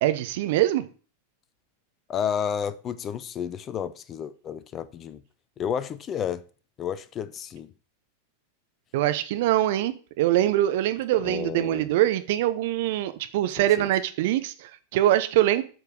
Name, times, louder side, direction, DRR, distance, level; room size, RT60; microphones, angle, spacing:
voice 1, 0.0-0.8 8.9-15.6, right 13 dB, 50° right, 0.8 m, -23 dB
voice 2, 2.1-5.2 5.6-6.4 6.8-7.7 11.2-11.9 13.6-13.9, left 8 dB, 30° left, 0.7 m, -31 dB
8.0 x 5.6 x 6.3 m
figure-of-eight pair, 90°, 0 cm